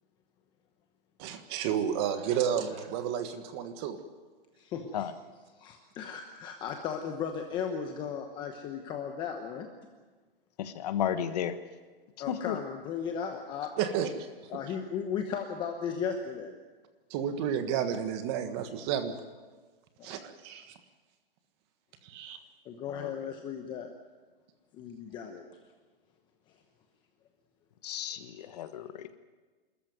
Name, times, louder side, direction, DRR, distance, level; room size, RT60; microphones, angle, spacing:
voice 1, 1.2-4.0 13.8-14.1 17.1-19.2 20.0-20.7 22.0-22.4, right 8 dB, 25° right, 8 dB, 1.5 m, -31 dB
voice 2, 4.6-5.1 5.6-9.7 12.2-13.8 14.5-16.5 20.0-20.1 22.6-23.9 24.7-25.5 28.1-28.5, left 7 dB, 15° left, 4 dB, 1.0 m, -36 dB
voice 3, 10.6-11.5 12.3-12.6 22.9-23.1 27.8-29.2, left 9 dB, 40° left, 10 dB, 1.4 m, -33 dB
26.5 x 14.0 x 9.4 m, 1.4 s
hypercardioid pair, 165°, 30 cm